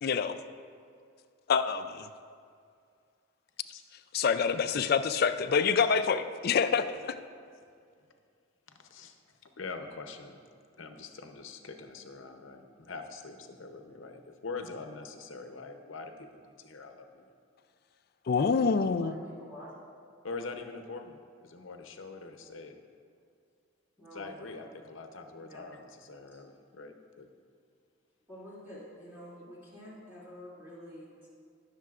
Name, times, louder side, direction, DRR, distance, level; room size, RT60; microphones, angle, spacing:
voice 1, 0.0-0.4 1.5-2.1 4.1-7.1 18.3-19.1, left 5 dB, 50° left, 11 dB, 0.3 m, -26 dB
voice 2, 8.7-9.2 9.4-10.4 10.8-17.3 20.2-22.8 24.1-27.3, left 3 dB, 70° left, 6 dB, 0.7 m, -44 dB
voice 3, 19.0-19.7 24.0-24.8 25.4-25.7 26.3-26.4 28.3-31.3, equal, 10° right, -9 dB, 2.3 m, -48 dB
18.0 x 6.6 x 2.4 m, 2.2 s
head